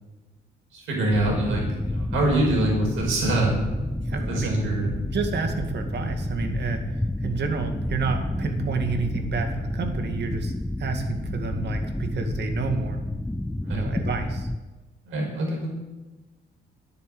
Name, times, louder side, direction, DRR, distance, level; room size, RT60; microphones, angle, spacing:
voice 1, 0.7-3.5 4.1-5.0 13.6-13.8 15.1-15.7, right 2 dB, 85° right, -1 dB, 5.6 m, -25 dB
sound 1, 1.1-14.6, left 1 dB, 5° left, 0.5 m, -30 dB
voice 2, 4.0-4.6 5.1-10.5 10.8-13.0 13.7-14.5, right 4 dB, 60° right, 5 dB, 2.3 m, -30 dB
11.0 x 9.6 x 8.0 m, 1.2 s
cardioid pair, 90°, 20 cm